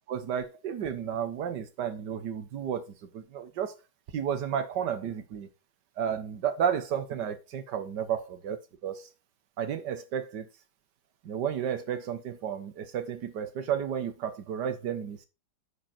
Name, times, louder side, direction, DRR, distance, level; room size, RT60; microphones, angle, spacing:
voice 1, 0.1-3.7 4.1-5.5 6.0-9.1 9.6-10.5 11.2-15.3, right 8 dB, 70° right, 1.7 m, -32 dB
10.0 x 5.1 x 4.3 m
omnidirectional pair, 2.0 m